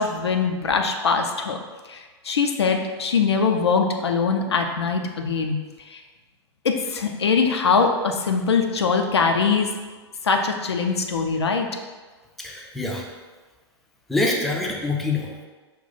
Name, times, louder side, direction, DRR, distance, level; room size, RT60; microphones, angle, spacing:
voice 1, 0.0-1.6 1.9-5.6 5.9-6.0 6.6-9.7 10.2-11.7, left 5 dB, 70° left, 3 dB, 0.5 m, -22 dB
voice 2, 12.4-13.0 14.1-15.5, left 2 dB, ahead, -1 dB, 0.5 m, -25 dB
5.3 x 2.4 x 3.9 m, 1.3 s
figure-of-eight pair, 95°, 14 cm